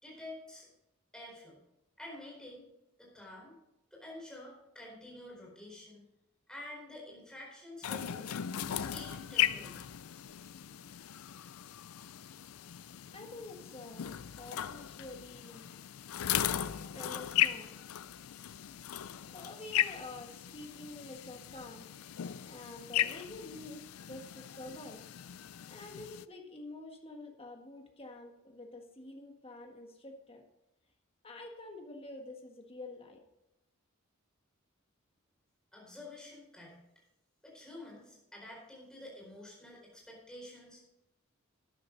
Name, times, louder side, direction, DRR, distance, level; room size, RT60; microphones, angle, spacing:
voice 1, 0.0-0.7 1.1-1.6 2.0-2.7 3.0-3.5 3.9-6.1 6.5-8.3 8.7-9.9 35.7-36.8 37.4-40.8, left 1 dB, 5° left, -3 dB, 4.4 m, -49 dB
sound 1, 7.8-26.3, left 11 dB, 80° left, 0.4 m, -37 dB
voice 2, 13.1-15.7 16.5-17.8 19.1-21.9 22.5-25.0 25.7-30.4 31.2-33.2, left 2 dB, 25° left, 3 dB, 1.6 m, -48 dB
12.5 x 9.9 x 4.0 m, 0.89 s
head